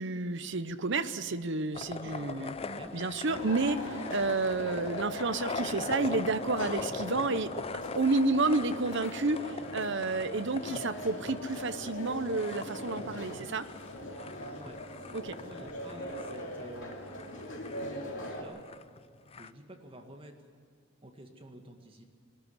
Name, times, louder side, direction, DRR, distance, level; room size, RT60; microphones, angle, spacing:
voice 1, 0.0-2.5 2.9-7.5 7.9-13.7 15.1-15.4, right 3 dB, 60° right, 11 dB, 0.9 m, -30 dB
sound 1, 1.7-19.5, left 4 dB, 30° left, 0.5 m, -42 dB
voice 2, 2.0-3.0 3.3-3.5 14.5-14.8 15.4-17.0 17.8-18.7 19.4-20.3 21.0-22.0, right 1 dB, 25° right, 3 dB, 1.9 m, -49 dB
sound 2, 3.3-18.4, equal, 60° left, 3.1 m, -41 dB
22.0 x 13.0 x 9.8 m, 2.3 s
head